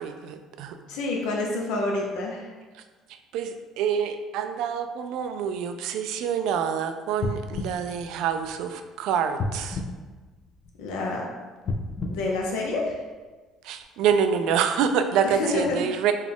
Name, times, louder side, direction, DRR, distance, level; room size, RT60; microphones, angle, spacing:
voice 1, 0.0-0.8 3.3-9.8 13.6-16.1, right 7 dB, 75° right, 8 dB, 0.3 m, -26 dB
voice 2, 0.9-2.5 10.8-11.2 12.0-13.0 15.2-15.8, left 2 dB, 85° left, -1 dB, 0.7 m, -28 dB
sound 1, 7.2-8.8 9.4-10.9 11.6-13.3 13.8-13.9, left 2 dB, 50° left, 0.4 m, -33 dB
3.9 x 2.3 x 3.5 m, 1.3 s
cardioid pair, 105°, 0 cm